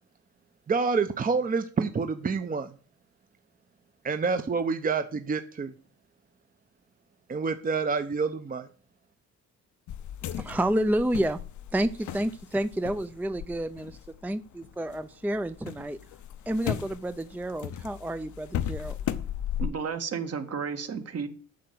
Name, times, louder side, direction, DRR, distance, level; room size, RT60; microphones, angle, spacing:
voice 1, 0.7-2.7 4.0-5.7 7.3-8.7, right 4 dB, 30° right, 9 dB, 0.8 m, -27 dB
sound 1, 9.9-15.0 15.3-19.7, left 10 dB, 70° left, 0.8 m, -36 dB
voice 2, 10.4-11.4 11.7-16.0 16.5-19.0, right 1 dB, 5° right, 12 dB, 0.5 m, -29 dB
voice 3, 19.6-21.3, right 6 dB, 55° right, 7 dB, 1.7 m, -32 dB
8.6 x 5.6 x 7.8 m, 0.40 s
cardioid pair, 90°, 30 cm